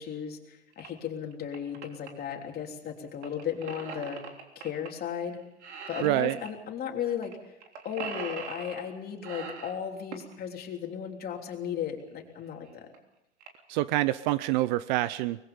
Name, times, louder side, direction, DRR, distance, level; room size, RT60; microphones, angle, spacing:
voice 1, 0.0-4.2 4.5-5.4 5.9-7.3 7.8-12.9, left 8 dB, 25° left, 2 dB, 3.4 m, -35 dB
sound 1, 0.7-0.9 1.3-2.1 3.2-4.9 5.2-5.4 5.6-6.5 7.2-7.3 7.6-8.9 9.2-10.3 12.0-12.1 12.7-12.8 12.9-13.0 13.4-13.7 14.2-14.5, right 5 dB, 70° right, 3.6 m, -41 dB
voice 2, 6.0-6.4 13.7-15.4, right 16 dB, 40° right, 17 dB, 0.6 m, -26 dB
24.0 x 20.5 x 5.5 m, 0.92 s
hypercardioid pair, 110°, 35 cm